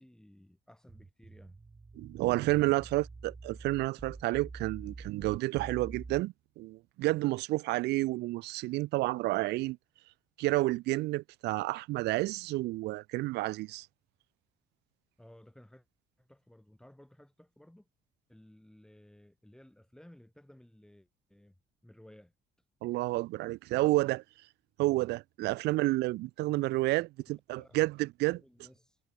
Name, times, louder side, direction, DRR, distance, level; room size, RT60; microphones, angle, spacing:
voice 1, 0.0-1.6 2.5-2.9 7.0-7.2 15.2-15.8 16.2-17.9 18.3-21.5 21.8-22.3 27.5-27.8 28.3-29.0, left 1 dB, 5° left, 5.0 m, -57 dB
sound 1, 0.9-6.2, right 3 dB, 20° right, 3.4 m, -47 dB
voice 2, 2.0-9.8 10.4-13.9 22.8-24.2 24.8-28.4, right 19 dB, 80° right, 0.7 m, -30 dB
cardioid pair, 110°, 17 cm